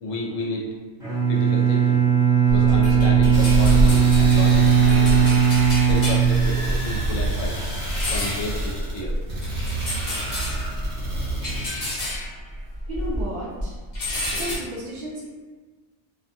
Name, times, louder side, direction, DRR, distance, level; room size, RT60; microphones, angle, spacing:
voice 1, 0.0-0.7 1.3-2.1 2.4-5.4 5.9-7.7 8.1-9.2, left 1 dB, 80° left, -2 dB, 1.0 m, -31 dB
Bowed string instrument, 1.0-7.0, right 7 dB, 5° right, 0.6 m, -18 dB
sound 1, 2.5-13.3 13.6-14.5, equal, 35° left, 0.7 m, -27 dB
sound 2, 3.3-11.7, right 2 dB, 55° right, 1.1 m, -31 dB
voice 2, 12.9-13.8 14.3-15.3, right 1 dB, 75° right, -5 dB, 0.4 m, -33 dB
2.5 x 2.2 x 2.7 m, 1.4 s
omnidirectional pair, 1.3 m